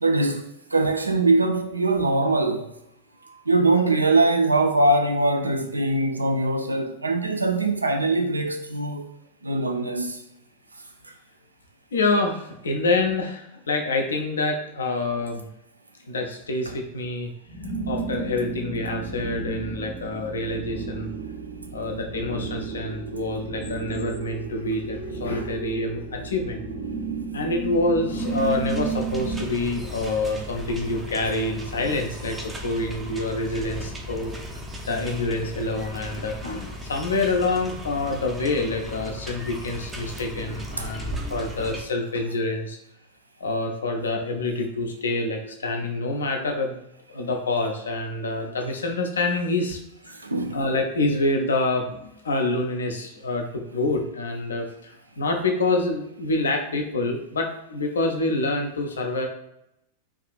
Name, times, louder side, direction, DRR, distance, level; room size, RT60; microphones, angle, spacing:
voice 1, 0.0-0.4 0.7-2.7 3.5-9.0 9.4-10.2 40.8-40.9 50.2-50.6, right 2 dB, 80° right, 0.3 m, -22 dB
voice 2, 11.9-15.5 16.1-17.3 17.9-21.1 21.7-26.6 27.3-34.3 34.9-42.8 43.4-46.8 47.1-49.8 50.1-50.2 50.5-59.3, left 2 dB, 70° left, 0.5 m, -27 dB
sound 1, 17.4-29.5, right 4 dB, 45° right, 0.8 m, -33 dB
sound 2, 28.2-41.8, left 1 dB, 10° right, 0.5 m, -36 dB
3.5 x 2.4 x 2.4 m
figure-of-eight pair, 90°, 0 cm